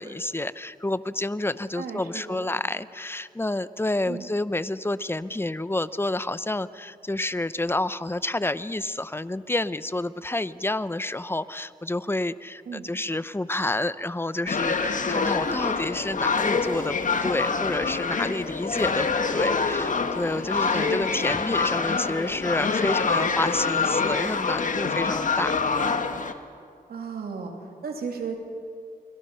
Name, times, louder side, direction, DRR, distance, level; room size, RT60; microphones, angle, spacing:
voice 1, 0.0-25.5, left 2 dB, 15° left, 15 dB, 0.8 m, -29 dB
voice 2, 1.7-2.5 4.0-4.2 12.7-12.8 20.7-21.0 26.9-28.4, right 5 dB, 85° right, 2 dB, 3.2 m, -35 dB
sound 1, 14.5-26.3, left 4 dB, 55° left, 1.6 m, -26 dB
30.0 x 22.0 x 5.7 m, 2.2 s
cardioid pair, 60°, 15 cm